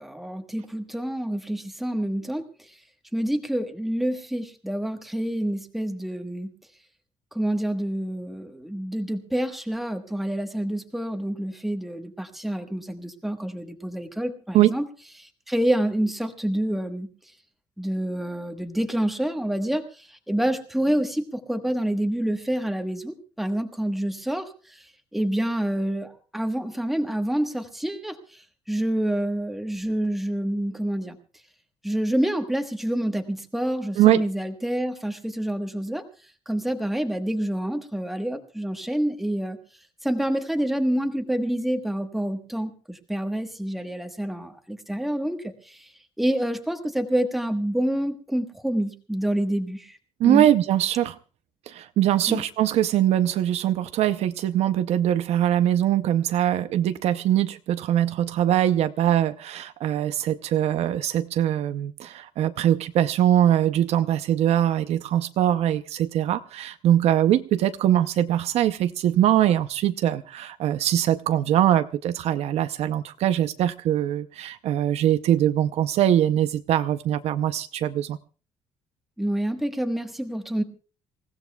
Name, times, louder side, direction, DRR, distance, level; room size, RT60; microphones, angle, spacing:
voice 1, 0.0-2.4 3.1-6.5 7.3-14.9 15.2-17.1 17.8-24.5 25.1-28.2 28.7-31.2 31.8-36.0 36.5-39.6 40.0-45.8 46.2-50.0 50.2-50.4 52.3-52.4 79.2-80.6, right 1 dB, ahead, 5 dB, 1.3 m, -27 dB
voice 2, 50.2-51.2 51.7-78.2, right 11 dB, 60° right, 11 dB, 0.6 m, -22 dB
27.5 x 16.0 x 2.3 m, 0.37 s
cardioid pair, 180°, 12 cm